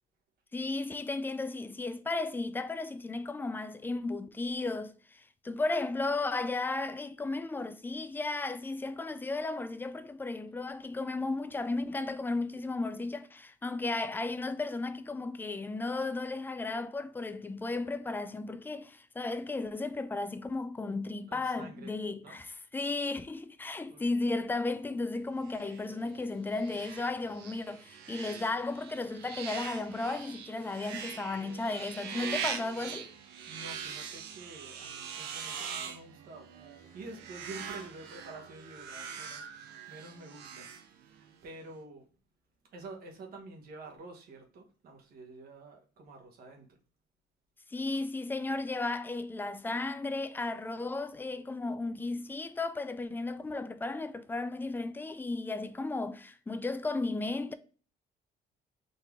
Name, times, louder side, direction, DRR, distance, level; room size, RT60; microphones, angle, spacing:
voice 1, 0.5-33.1 47.7-57.5, left 3 dB, 10° left, 0.4 m, -34 dB
voice 2, 21.3-22.0 22.2-22.4 23.9-24.0 33.5-36.5 36.9-40.7 41.1-42.1 42.7-46.8, right 2 dB, 65° right, 1.2 m, -48 dB
sound 1, 25.4-41.4, right 7 dB, 85° right, 0.6 m, -42 dB
4.0 x 2.8 x 3.4 m
cardioid pair, 110°, 17 cm